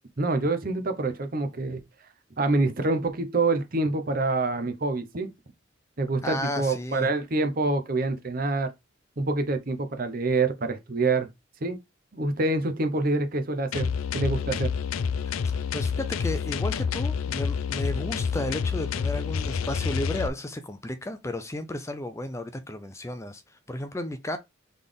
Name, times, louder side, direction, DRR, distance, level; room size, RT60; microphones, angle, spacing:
voice 1, 0.2-1.8 2.4-5.3 6.0-8.7 9.2-11.3 11.6-11.8 12.1-14.7, right 3 dB, 45° right, 0.8 m, -26 dB
voice 2, 6.2-7.1 15.2-15.3 15.7-24.4, left 1 dB, 15° left, 0.4 m, -33 dB
sound 1, 13.7-20.3, left 6 dB, 90° left, 0.4 m, -28 dB
4.1 x 3.4 x 3.6 m
head